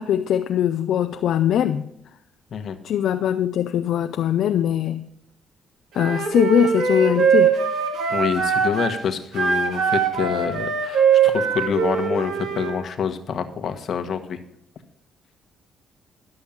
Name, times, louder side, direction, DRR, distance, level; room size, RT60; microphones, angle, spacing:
voice 1, 0.0-1.9 2.8-5.0 5.9-7.5, left 10 dB, 75° left, 8 dB, 0.5 m, -21 dB
Wind instrument woodwind instrument, 6.0-9.0 9.3-12.8, right 7 dB, 75° right, 2.1 m, -21 dB
voice 2, 8.1-14.4, left 7 dB, 60° left, 6 dB, 1.2 m, -26 dB
11.5 x 6.3 x 7.2 m, 0.79 s
cardioid pair, 90°, 0 cm